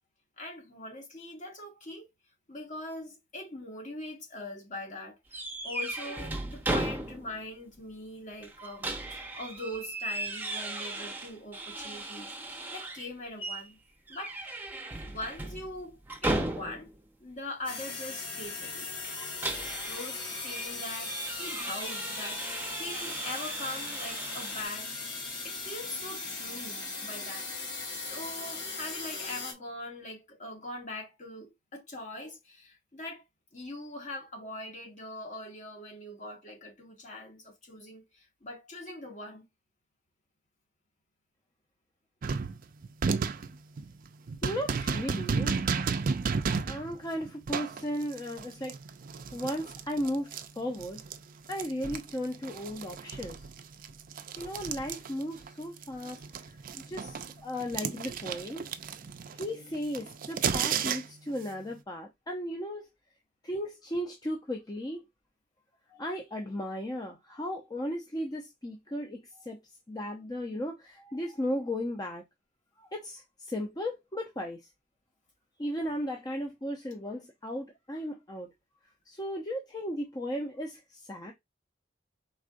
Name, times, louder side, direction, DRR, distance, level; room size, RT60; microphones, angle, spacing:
voice 1, 0.4-2.1 2.5-13.8 14.1-14.4 15.0-16.9 17.2-18.9 19.8-25.0 25.4-27.5 28.0-33.2 33.5-39.4, left 1 dB, 40° left, 1.6 m, -42 dB
sound 1, 5.3-7.5 7.8-7.9 8.4-13.1 13.4-13.7 14.1-17.0 19.0-24.6, right 2 dB, 10° right, 0.8 m, -36 dB
sound 2, 17.6-29.5, left 3 dB, 85° left, 2.1 m, -38 dB
sound 3, 42.2-51.2 51.5-55.5 55.8-61.3, right 5 dB, 45° right, 0.4 m, -33 dB
voice 2, 44.4-45.6 46.7-48.8 49.3-51.0 51.5-53.5 54.4-58.7 59.3-62.9 63.4-65.1 65.9-69.6 69.9-72.2 72.8-74.7 75.6-78.5 79.1-81.3, equal, 20° left, 0.6 m, -36 dB
4.9 x 3.7 x 2.5 m
head